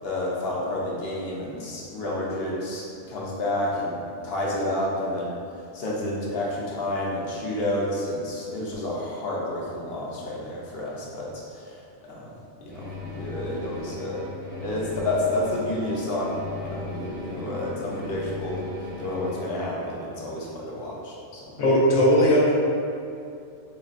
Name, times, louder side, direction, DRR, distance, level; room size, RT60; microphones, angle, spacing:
voice 1, 0.0-11.8 12.1-12.3 12.6-14.3 14.6-21.5, left 1 dB, 60° left, -4 dB, 0.8 m, -30 dB
sound 1, 12.7-19.4, left 2 dB, 70° right, 1.1 m, -36 dB
voice 2, 21.6-22.5, equal, 90° left, -5 dB, 1.0 m, -18 dB
3.8 x 2.1 x 2.4 m, 2.5 s
omnidirectional pair, 1.2 m